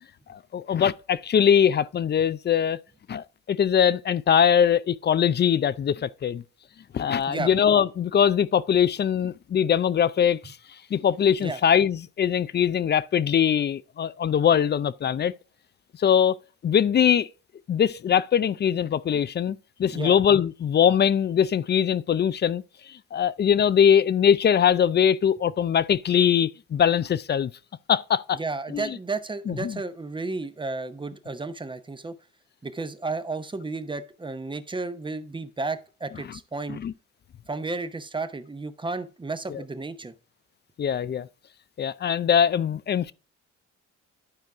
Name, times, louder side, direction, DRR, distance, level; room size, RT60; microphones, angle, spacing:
voice 1, 0.3-2.8 3.1-6.4 6.9-10.6 10.9-15.3 16.0-16.4 16.6-17.3 17.7-22.6 22.9-27.5 27.9-28.4 28.7-29.0 29.5-29.8 36.7-36.9 39.5-39.6 40.8-41.3 41.8-43.1, left 8 dB, 35° left, 0.4 m, -22 dB
voice 2, 28.3-32.2 32.6-36.8 37.5-40.1, right 3 dB, 15° right, 0.7 m, -32 dB
11.5 x 4.6 x 3.5 m
cardioid pair, 90°, 30 cm